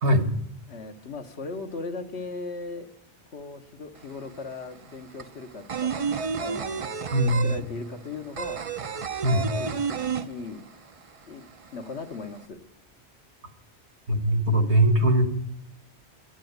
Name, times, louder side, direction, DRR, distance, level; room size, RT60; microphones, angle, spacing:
voice 1, 0.7-2.9 3.3-6.1 6.4-8.6 9.3-10.6 11.3-11.4 11.7-12.6, left 3 dB, 70° left, 5 dB, 1.5 m, -38 dB
sound 1, 4.0-4.1 4.3-10.9 11.2-11.3 11.6-12.4, right 6 dB, 40° right, 0.5 m, -30 dB
voice 2, 7.1-7.6 9.2-9.5 14.1-15.3, right 1 dB, 75° right, 7 dB, 1.8 m, -21 dB
12.0 x 9.1 x 8.0 m, 0.75 s
omnidirectional pair, 1.2 m